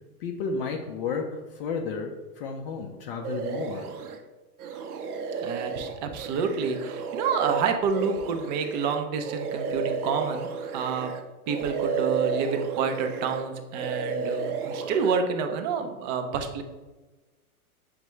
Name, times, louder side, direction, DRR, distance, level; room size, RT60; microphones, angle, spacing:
voice 1, 0.2-3.9, left 5 dB, 40° left, 2 dB, 0.5 m, -32 dB
sound 1, 3.2-4.2 4.6-11.2 11.5-13.5 13.7-15.2, right 6 dB, 80° right, 0.6 m, -32 dB
voice 2, 5.4-10.5 10.7-11.1 11.5-16.6, right 5 dB, 30° right, 6 dB, 0.4 m, -28 dB
6.4 x 2.2 x 3.0 m, 1.2 s
hypercardioid pair, 115°, 45 cm